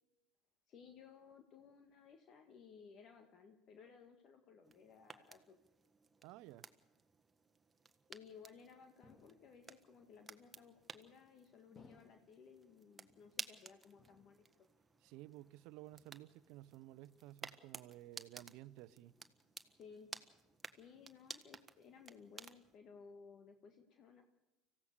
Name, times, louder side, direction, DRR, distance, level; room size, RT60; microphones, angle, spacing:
voice 1, 0.7-5.6 8.1-14.7 19.8-20.1 20.7-24.2, left 6 dB, 50° left, 1.8 m, -59 dB
sound 1, 4.6-22.8, right 4 dB, 20° right, 1.5 m, -55 dB
voice 2, 6.2-6.7 15.0-19.1, right 16 dB, 65° right, 0.8 m, -54 dB
sound 2, 9.0-9.9 10.7-11.2 11.8-12.6 13.1-13.7 14.0-14.8 15.1-15.5 15.9-16.5, left 3 dB, 30° left, 2.2 m, -67 dB
25.5 x 16.0 x 6.7 m
hypercardioid pair, 80°, 0 cm